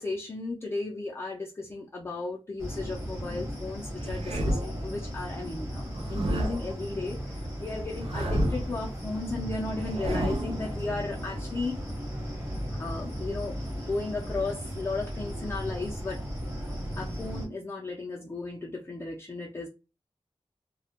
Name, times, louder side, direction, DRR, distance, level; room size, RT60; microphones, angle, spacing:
voice 1, 0.0-11.8 12.8-13.6 13.8-16.2 17.0-19.7, left 3 dB, 25° left, 0.4 m, -35 dB
sound 1, 2.6-17.5, equal, 25° right, 1.0 m, -36 dB
sound 2, 4.0-4.8 5.9-6.7 7.9-8.8 9.7-10.6, equal, 65° right, 0.5 m, -30 dB
2.2 x 2.1 x 2.8 m
wide cardioid pair, 105°, 11 cm